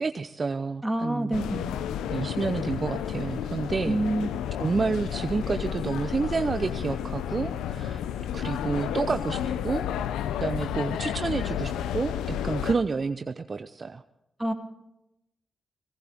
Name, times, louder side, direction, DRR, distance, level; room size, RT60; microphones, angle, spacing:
voice 1, 0.0-1.4 2.1-4.0 4.6-8.0 8.3-9.4 9.6-9.9 10.4-14.0, right 4 dB, 50° right, 9 dB, 0.7 m, -29 dB
voice 2, 0.8-1.7 3.8-4.3 14.4-14.5, right 1 dB, 15° right, 3 dB, 2.9 m, -27 dB
sound 1, 1.3-12.7, left 9 dB, 90° left, 0.5 m, -31 dB
20.0 x 17.5 x 3.6 m, 0.85 s
supercardioid pair, 40°, 0 cm